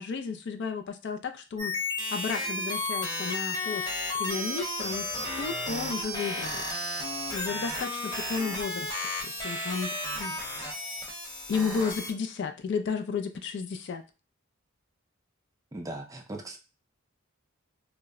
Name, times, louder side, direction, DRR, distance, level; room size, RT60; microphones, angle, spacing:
voice 1, 0.0-1.7 2.1-5.1 5.4-6.6 7.3-9.0 9.2-10.4 11.5-14.0, left 5 dB, 55° left, 8 dB, 0.3 m, -33 dB
sound 1, 1.6-12.1, left 1 dB, 20° left, 0.8 m, -33 dB
voice 2, 15.7-16.6, right 1 dB, 15° right, 4 dB, 0.4 m, -38 dB
2.1 x 2.0 x 3.5 m, 0.30 s
head